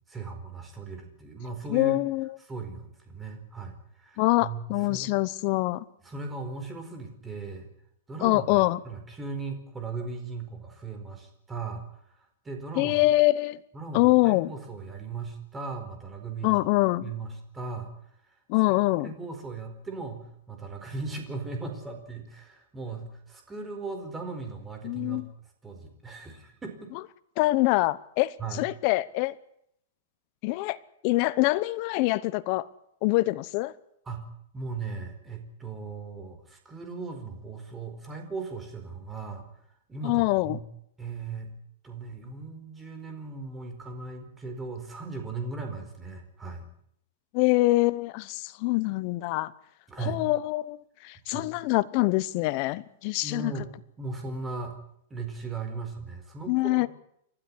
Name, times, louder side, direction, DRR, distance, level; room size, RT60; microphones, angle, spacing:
voice 1, 0.1-2.0 2.5-5.1 6.0-7.7 8.1-11.8 12.4-13.0 13.7-16.6 17.0-17.9 18.6-18.7 19.0-25.2 25.6-26.9 28.4-28.6 34.1-34.3 34.5-39.5 39.9-40.6 41.0-41.5 41.8-46.7 49.9-50.2 51.3-51.5 53.2-53.7 54.0-54.7 55.1-56.9, right 4 dB, 10° right, 4.6 m, -38 dB
voice 2, 1.7-2.3 4.2-5.8 8.2-8.8 12.8-13.6 13.9-14.5 16.4-17.1 18.5-19.1 24.8-25.3 27.4-29.3 30.4-30.8 31.0-32.7 33.0-33.7 40.0-40.6 47.3-49.5 50.0-53.5 56.5-56.9, left 20 dB, 40° left, 0.9 m, -24 dB
30.0 x 12.5 x 10.0 m
supercardioid pair, 155°, 0 cm